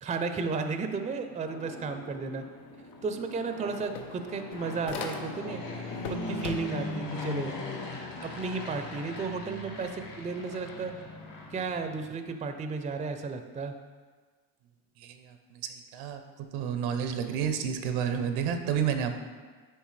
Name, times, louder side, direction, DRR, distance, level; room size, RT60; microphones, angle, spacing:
voice 1, 0.0-2.4 3.0-5.6 6.1-7.6 8.2-10.9 11.5-13.7, right 4 dB, 15° right, 7 dB, 0.4 m, -33 dB
Fixed-wing aircraft airplane, 1.1-12.2, left 2 dB, 55° left, 1.7 m, -40 dB
sound 1, 2.9-3.0 3.3-5.6 5.9-7.0, left 5 dB, 90° left, 0.7 m, -40 dB
voice 2, 15.0-16.2 16.5-19.2, right 8 dB, 75° right, 7 dB, 0.7 m, -30 dB
9.8 x 3.3 x 3.2 m, 1.4 s
hypercardioid pair, 65°, 49 cm